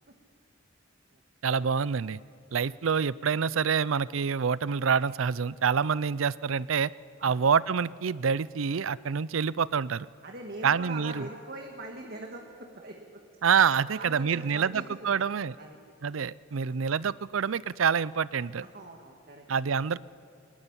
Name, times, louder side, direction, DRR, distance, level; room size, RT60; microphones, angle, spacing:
voice 1, 1.4-2.2 2.5-6.9 7.2-10.1 10.6-11.3 13.4-15.6 16.0-18.6 19.5-20.0, right 6 dB, 75° right, 20 dB, 0.5 m, -27 dB
voice 2, 10.2-13.2 13.9-15.2 15.6-15.8 16.7-16.8 18.7-19.4, right 2 dB, 50° right, 2 dB, 2.0 m, -42 dB
23.0 x 20.5 x 9.9 m, 2.3 s
head